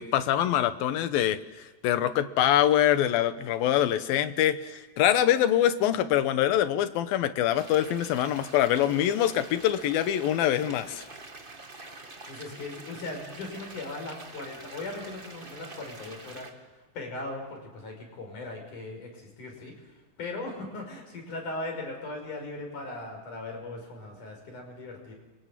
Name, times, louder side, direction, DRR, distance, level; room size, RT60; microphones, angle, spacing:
voice 1, 0.0-11.0, left 11 dB, 85° left, 11 dB, 2.9 m, -24 dB
sound 1, 7.5-16.5, right 2 dB, 25° right, 1.1 m, -46 dB
voice 2, 12.3-16.5 16.9-19.7 20.2-25.1, left 2 dB, 60° left, 3 dB, 6.9 m, -38 dB
30.0 x 23.5 x 7.6 m, 1.1 s
omnidirectional pair, 4.1 m